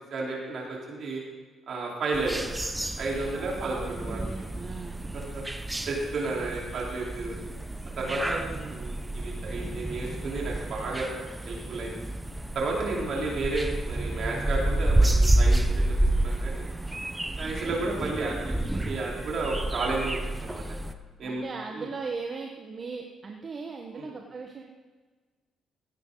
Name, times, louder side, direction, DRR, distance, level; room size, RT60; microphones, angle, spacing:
voice 1, 0.1-1.2 1.7-2.4 3.0-4.5 5.1-5.4 5.9-7.4 8.0-8.4 8.7-11.1 11.3-12.0 12.5-16.6 17.4-20.6 21.2-21.4 21.7-21.9 23.9-24.1, right 3 dB, 60° right, -3 dB, 3.9 m, -32 dB
sound 1, 2.1-20.9, right 1 dB, 10° right, 0.7 m, -29 dB
voice 2, 3.3-5.0 6.3-6.5 8.0-8.7 21.2-24.6, right 4 dB, 40° right, 2 dB, 1.2 m, -39 dB
16.0 x 9.6 x 3.9 m, 1.4 s
cardioid pair, 90°, 0 cm